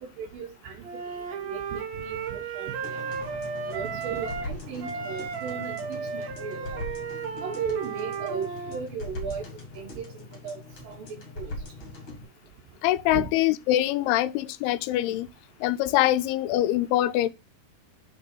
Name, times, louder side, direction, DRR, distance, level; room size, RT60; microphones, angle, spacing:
voice 1, 0.0-3.1 3.7-6.8 7.4-9.4 9.7-10.1 10.4-11.1 11.4-11.5 13.1-13.3, right 6 dB, 65° right, 2.9 m, -36 dB
Wind instrument woodwind instrument, 0.8-4.5 4.8-8.8, right 6 dB, 85° right, 1.5 m, -34 dB
sound 1, 2.8-12.2, left 2 dB, 45° left, 1.7 m, -41 dB
voice 2, 12.8-15.3 15.6-17.3, left 14 dB, 80° left, 2.4 m, -24 dB
6.8 x 4.3 x 4.5 m
omnidirectional pair, 4.8 m